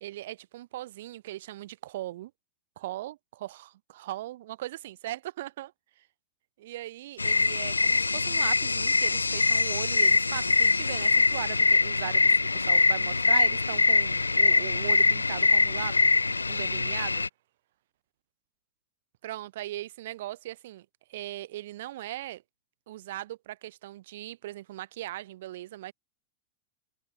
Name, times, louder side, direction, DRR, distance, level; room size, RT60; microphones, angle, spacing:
voice 1, 0.0-2.3 2.8-5.7 6.6-16.1 16.5-17.3 19.2-22.4 22.9-25.9, right 15 dB, 55° right, 1.8 m, -39 dB
sound 1, 7.2-17.3, left 3 dB, 80° left, 0.5 m, -23 dB
figure-of-eight pair, 90°, 0 cm